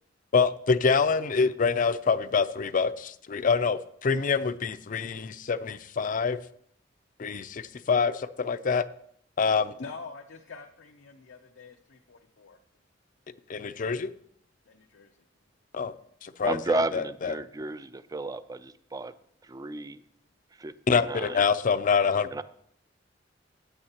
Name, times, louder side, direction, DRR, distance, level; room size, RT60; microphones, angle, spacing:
voice 1, 0.3-6.4 7.2-8.8 9.4-9.7 13.5-14.1 15.7-15.9 16.2-17.3 20.9-22.3, left 5 dB, 45° left, 13 dB, 0.5 m, -26 dB
voice 2, 9.7-12.6 14.7-15.1, left 4 dB, 90° left, 4 dB, 0.7 m, -45 dB
voice 3, 16.4-19.1 19.5-20.0 20.6-20.7 21.1-21.4 22.3-22.4, right 2 dB, 20° right, 14 dB, 0.4 m, -32 dB
15.5 x 8.9 x 2.9 m, 0.69 s
head